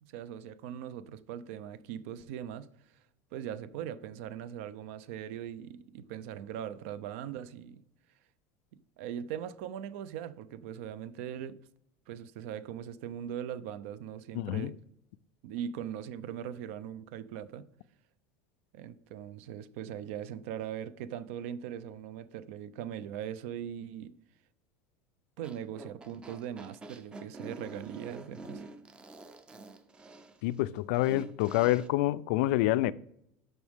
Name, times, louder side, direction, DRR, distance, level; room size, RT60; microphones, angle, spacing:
voice 1, 0.0-2.7 3.3-7.8 9.0-11.6 12.1-14.8 15.4-17.7 18.7-24.1 25.4-28.6, right 9 dB, 65° right, 0.5 m, -40 dB
voice 2, 14.3-14.7 30.4-32.9, left 16 dB, 65° left, 0.4 m, -27 dB
sound 1, 25.4-31.9, right 2 dB, 15° right, 0.5 m, -47 dB
11.0 x 6.2 x 3.5 m
cardioid pair, 180°, 7 cm